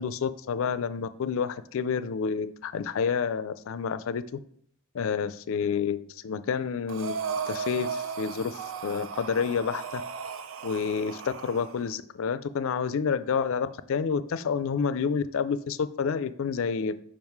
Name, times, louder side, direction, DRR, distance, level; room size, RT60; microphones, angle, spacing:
voice 1, 0.0-4.2 4.9-10.0 10.6-17.0, left 6 dB, 65° left, 14 dB, 0.4 m, -29 dB
Breathing, 6.9-11.8, right 6 dB, 70° right, 0.5 m, -36 dB
5.5 x 5.0 x 4.7 m, 0.64 s
head